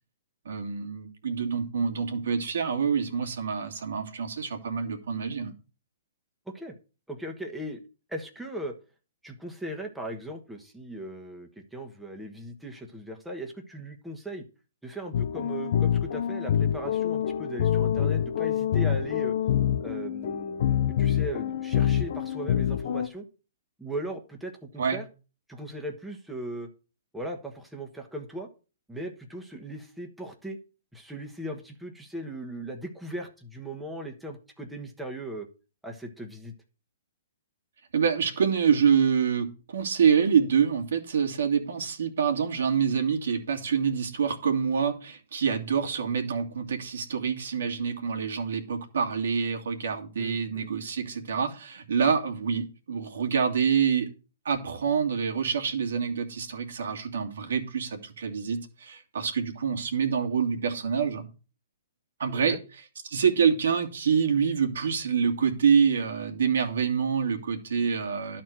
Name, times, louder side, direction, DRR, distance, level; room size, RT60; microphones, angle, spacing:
voice 1, 0.4-5.5 24.8-25.0 37.9-54.1 54.4-61.3 62.2-62.6 63.0-68.4, right 6 dB, 75° right, 3 dB, 2.4 m, -26 dB
voice 2, 7.1-7.8 8.1-8.7 9.2-14.4 14.8-19.3 19.8-23.2 23.8-25.0 25.5-26.7 27.1-28.5 28.9-30.6 30.9-35.5 35.8-36.5 50.2-50.7 62.3-62.6, right 1 dB, 5° right, 1 dB, 1.5 m, -38 dB
sound 1, 15.1-23.1, left 9 dB, 60° left, 0.7 m, -26 dB
11.5 x 4.4 x 7.6 m, 0.34 s
hypercardioid pair, 130°, 0 cm